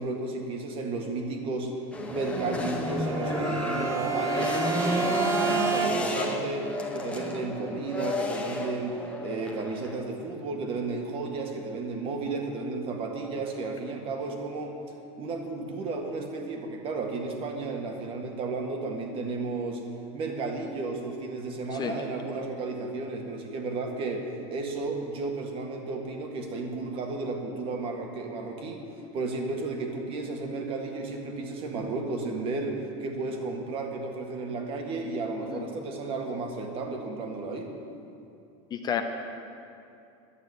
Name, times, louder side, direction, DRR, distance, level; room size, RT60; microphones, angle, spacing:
voice 1, 0.0-1.7 2.1-14.7 15.2-19.8 20.1-28.8 29.1-37.7, right 3 dB, 35° right, 3 dB, 1.8 m, -33 dB
sound 1, 1.9-10.0, left 2 dB, 5° left, 1.2 m, -31 dB
Bowed string instrument, 2.9-6.3, right 6 dB, 20° right, 0.7 m, -30 dB
voice 2, 5.9-6.3 21.7-22.0 35.5-35.6 38.7-39.0, left 9 dB, 25° left, 5 dB, 0.8 m, -32 dB
11.5 x 8.7 x 8.1 m, 2.7 s
supercardioid pair, 145°, 15 cm